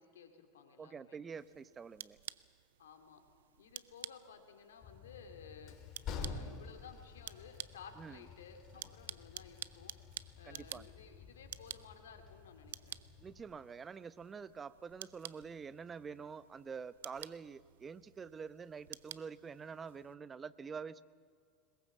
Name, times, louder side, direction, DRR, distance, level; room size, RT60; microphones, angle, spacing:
voice 1, 0.0-1.2 2.8-3.2 3.6-5.8 6.1-9.9 10.4-13.0, left 6 dB, 85° left, 6 dB, 2.6 m, -55 dB
voice 2, 0.8-2.2 8.0-8.2 10.4-10.9 13.2-21.0, right 6 dB, 25° right, 16 dB, 0.8 m, -47 dB
sound 1, 1.4-20.1, right 12 dB, 80° right, 0.5 m, -52 dB
Train, 4.8-13.4, left 5 dB, 50° left, 3.6 m, -49 dB
22.0 x 21.0 x 7.4 m, 2.1 s
hypercardioid pair, 85°, 0 cm